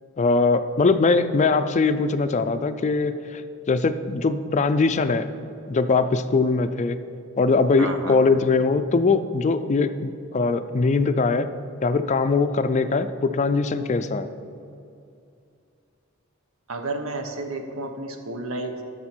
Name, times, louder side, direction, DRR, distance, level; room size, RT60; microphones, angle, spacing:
voice 1, 0.2-3.4 3.7-5.3 5.7-7.0 7.4-11.5 11.8-14.3, left 4 dB, 35° left, 10 dB, 0.4 m, -21 dB
voice 2, 7.8-8.2 16.7-18.8, right 2 dB, 85° right, 5 dB, 1.0 m, -31 dB
12.5 x 6.7 x 4.4 m, 2.6 s
head